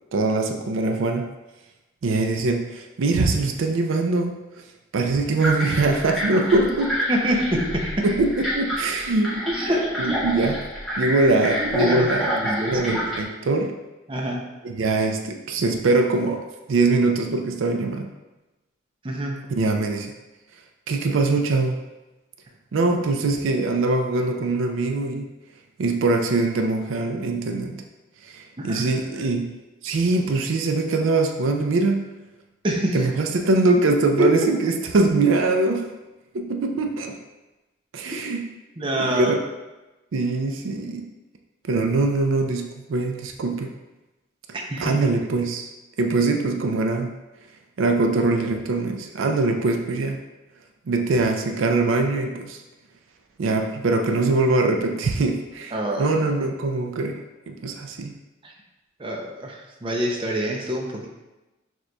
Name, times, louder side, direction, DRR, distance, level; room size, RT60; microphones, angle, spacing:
voice 1, 0.1-1.3 2.0-4.4 4.9-7.0 8.0-9.4 10.0-10.7 11.0-12.3 12.6-13.7 14.6-18.1 19.5-20.1 20.9-21.8 22.7-25.3 25.8-27.8 28.3-29.5 29.8-32.1 32.9-35.8 36.3-37.2 37.9-38.4 39.0-39.4 40.1-41.0 41.7-43.7 44.8-45.7 46.0-47.1 47.8-50.2 50.9-52.6 53.4-55.7 56.0-57.2 57.5-58.1, right 3 dB, 80° right, 4 dB, 0.4 m, -22 dB
sound 1, 5.4-13.2, equal, ahead, 1.2 m, -28 dB
voice 2, 7.1-8.0 9.5-9.9 11.8-12.8 14.1-14.5 19.0-19.4 28.6-28.8 32.6-33.1 34.2-34.3 38.8-39.4 44.5-44.9 55.7-56.1 58.4-58.5 59.0-61.1, right 1 dB, 25° right, 0 dB, 0.5 m, -26 dB
6.3 x 3.0 x 2.2 m, 1.1 s
head